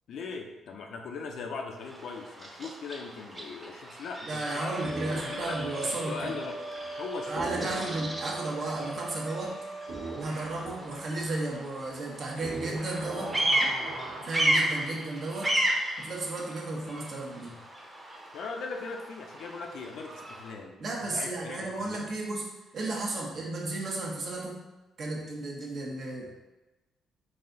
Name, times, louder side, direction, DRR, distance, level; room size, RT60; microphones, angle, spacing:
voice 1, 0.1-4.7 5.3-5.5 5.8-6.6 7.0-7.9 14.9-15.0 18.3-20.8 21.0-22.0, left 4 dB, 70° left, 2 dB, 0.5 m, -39 dB
Bird vocalization bird call bird song, 1.8-20.5, right 1 dB, 20° right, 0.9 m, -35 dB
sound 1, 4.3-10.3, right 2 dB, 30° left, 0.7 m, -40 dB
voice 2, 4.3-6.3 7.3-9.6 10.2-13.4 14.2-15.6 16.0-17.6 20.8-22.4 22.7-24.6 25.0-26.3, right 2 dB, 55° right, -1 dB, 1.0 m, -34 dB
sound 2, 4.8-7.1 7.3-14.9, right 2 dB, 85° right, 1.2 m, -41 dB
4.1 x 2.4 x 3.8 m, 1.1 s
cardioid pair, 90°, 0 cm